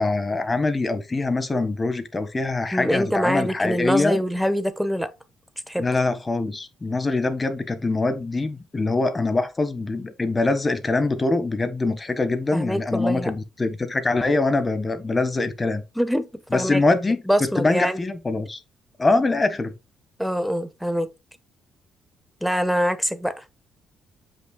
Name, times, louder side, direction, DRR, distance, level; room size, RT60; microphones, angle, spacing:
voice 1, 0.0-4.2 5.8-15.8 16.5-17.2 17.6-18.6 19.0-19.7, left 3 dB, 25° left, 1.4 m, -23 dB
voice 2, 2.7-5.1 5.7-5.8 12.5-13.3 16.0-16.8 17.3-18.0 20.2-21.1 22.4-23.4, equal, ahead, 1.1 m, -24 dB
7.5 x 5.8 x 2.2 m
cardioid pair, 85°, 0 cm